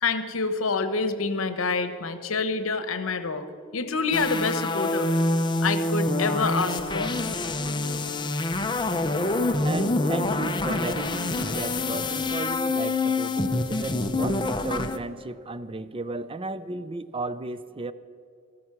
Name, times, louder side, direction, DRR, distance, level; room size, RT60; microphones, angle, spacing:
voice 1, 0.0-3.5 3.7-5.1 5.6-7.2, left 4 dB, 85° left, 11 dB, 1.0 m, -27 dB
sound 1, 4.1-15.0, left 2 dB, 25° left, 0.7 m, -26 dB
voice 2, 9.6-17.9, right 3 dB, 25° right, 14 dB, 0.5 m, -34 dB
14.0 x 13.5 x 5.9 m, 2.2 s
head